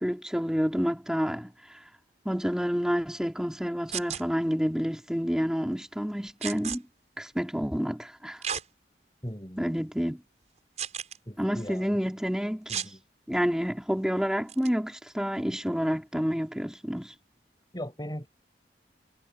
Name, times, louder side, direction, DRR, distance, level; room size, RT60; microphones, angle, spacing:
voice 1, 0.0-1.5 2.2-6.8 7.2-8.4 9.6-10.2 11.4-12.7 13.3-17.1, equal, 5° right, 3.0 m, -29 dB
sound 1, 3.9-4.2 6.4-6.8 8.4-8.6 9.3-9.4 10.8-11.2 12.7-12.9 14.5-14.7, right 8 dB, 40° right, 6.1 m, -33 dB
voice 2, 9.2-9.7 11.3-12.0 12.7-13.0 17.7-18.3, equal, 25° left, 7.5 m, -38 dB
head